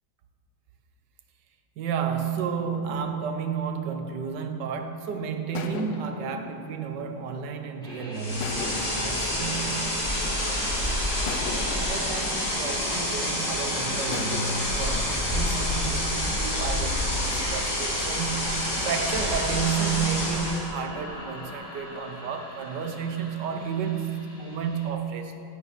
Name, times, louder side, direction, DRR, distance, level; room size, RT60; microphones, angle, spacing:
voice 1, 1.8-11.0 11.5-25.4, right 6 dB, 75° right, 7 dB, 1.5 m, -32 dB
sound 1, 5.5-7.8 8.4-10.5 11.3-13.5 14.1-15.1, left 6 dB, 85° left, 1.4 m, -39 dB
sound 2, 7.8-24.9, equal, ahead, 2.6 m, -41 dB
sound 3, 8.1-20.7, left 1 dB, 40° left, 3.3 m, -28 dB
15.5 x 9.3 x 4.2 m, 2.6 s
omnidirectional pair, 1.9 m